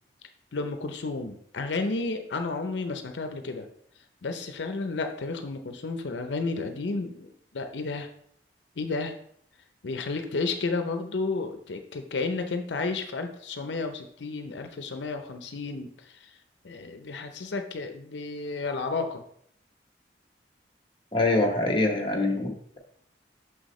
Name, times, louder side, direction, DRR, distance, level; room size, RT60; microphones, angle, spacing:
voice 1, 0.5-3.7 4.2-7.3 7.5-8.1 8.8-9.1 9.8-16.3 16.6-19.2, left 3 dB, 85° left, 6 dB, 0.6 m, -32 dB
voice 2, 21.1-22.8, left 2 dB, 30° left, 2 dB, 1.0 m, -25 dB
6.4 x 6.0 x 3.1 m, 0.66 s
head